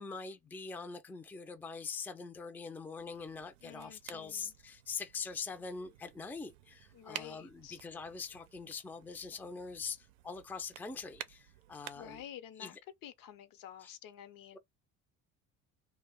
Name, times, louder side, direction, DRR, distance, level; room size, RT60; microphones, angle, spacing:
voice 1, 0.0-12.2 12.6-12.7 13.8-13.9 14.5-14.6, left 5 dB, 5° left, 0.4 m, -43 dB
sound 1, 2.9-12.3, right 13 dB, 85° right, 0.5 m, -52 dB
voice 2, 3.6-4.5 6.9-7.8 11.9-12.8 13.0-14.6, left 10 dB, 60° left, 0.7 m, -50 dB
2.4 x 2.2 x 3.5 m
hypercardioid pair, 75°, 38 cm